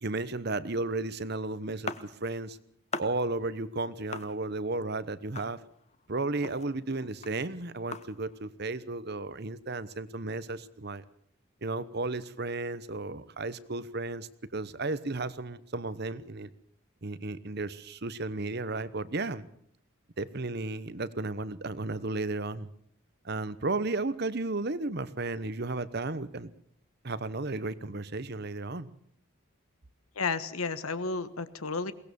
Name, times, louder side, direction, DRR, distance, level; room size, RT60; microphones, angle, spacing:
voice 1, 0.0-2.6 3.0-5.6 6.1-11.0 11.6-16.5 17.0-19.5 20.2-22.7 23.2-26.5 27.0-28.9, right 2 dB, 50° right, 15 dB, 1.0 m, -34 dB
sound 1, 1.8-2.5 2.9-3.4 4.1-4.8 5.4-6.1 6.3-8.4, left 4 dB, 30° left, 1.0 m, -40 dB
voice 2, 30.2-31.9, left 4 dB, 90° left, 13 dB, 1.4 m, -32 dB
22.5 x 18.5 x 7.0 m, 0.65 s
head